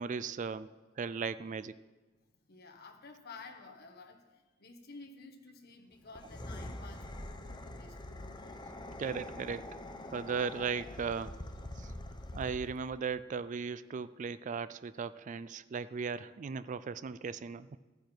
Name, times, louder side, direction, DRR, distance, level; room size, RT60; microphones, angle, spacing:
voice 1, 0.0-1.8 9.0-9.8 10.1-11.4 11.8-11.9 12.3-17.8, right 5 dB, 40° right, 16 dB, 0.3 m, -37 dB
voice 2, 2.5-8.5, left 3 dB, 55° left, 4 dB, 1.4 m, -52 dB
sound 1, 6.1-12.9, left 1 dB, 25° left, 0.9 m, -44 dB
15.5 x 9.6 x 4.6 m, 1.3 s
head